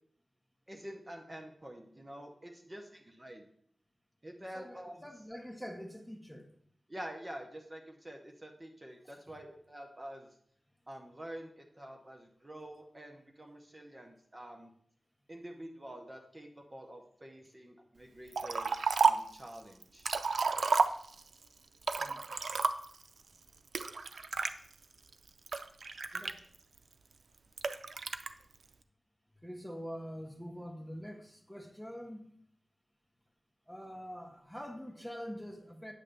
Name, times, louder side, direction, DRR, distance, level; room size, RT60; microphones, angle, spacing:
voice 1, 0.7-3.5 4.2-5.0 6.9-10.3 10.9-14.7 15.3-18.7 19.0-20.1, right 1 dB, 25° right, 3 dB, 0.9 m, -47 dB
voice 2, 4.4-6.5 9.0-9.3 22.0-22.3 26.1-26.4 29.4-32.3 33.7-35.9, equal, ahead, 4 dB, 1.1 m, -45 dB
Liquid, 18.3-19.3 19.8-21.3 21.8-23.0 23.7-24.5 25.1-26.8 27.6-28.3, right 4 dB, 85° right, 0.4 m, -31 dB
8.9 x 3.3 x 6.7 m, 0.64 s
wide cardioid pair, 80°, 0 cm